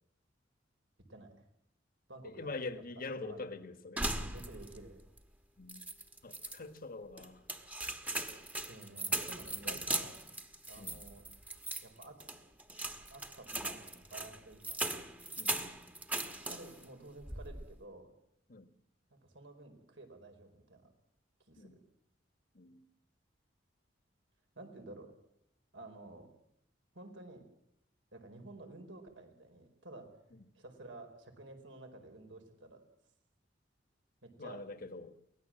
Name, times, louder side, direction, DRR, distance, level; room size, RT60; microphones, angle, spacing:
voice 1, 1.1-1.4 2.1-2.8 3.2-3.5 4.3-5.0 8.7-10.1 10.7-11.3 11.8-12.4 13.1-14.8 16.3-18.1 19.1-20.9 21.5-21.8 24.5-25.1 25.7-26.3 26.9-27.4 28.1-30.1 30.5-32.8 34.2-34.6, right 2 dB, 85° right, 4 dB, 4.7 m, -52 dB
voice 2, 2.2-4.4 5.6-5.9 6.2-7.4 9.6-9.9 10.8-11.0 13.5-13.7 15.4-15.6 18.5-18.7 21.6-21.8 22.5-22.9 34.4-35.2, left 3 dB, 50° left, 10 dB, 1.5 m, -45 dB
sound 1, 4.0-4.9 5.2-5.3 5.7-6.6 7.2-16.9 17.2-17.7, right 2 dB, 10° right, 1.3 m, -39 dB
23.5 x 18.0 x 7.6 m, 0.75 s
head